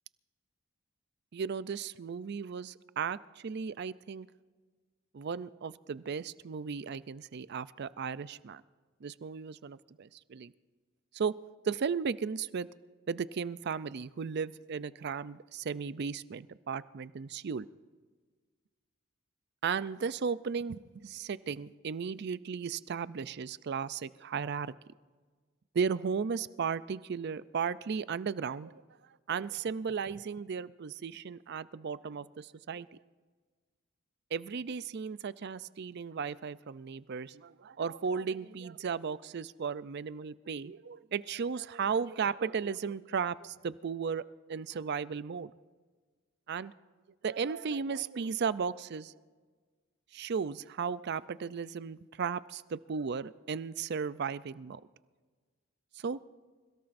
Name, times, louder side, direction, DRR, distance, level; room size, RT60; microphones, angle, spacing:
voice 1, 1.3-4.3 5.1-8.6 9.0-10.5 11.1-11.4 11.6-12.7 13.1-17.7 19.6-24.7 25.7-28.8 29.3-32.9 34.3-44.2 44.5-45.5 46.5-46.7 47.2-49.1 50.1-54.8 56.0-56.2, right 6 dB, 55° right, 17 dB, 0.4 m, -35 dB
27.5 x 17.0 x 2.6 m, 1.5 s
head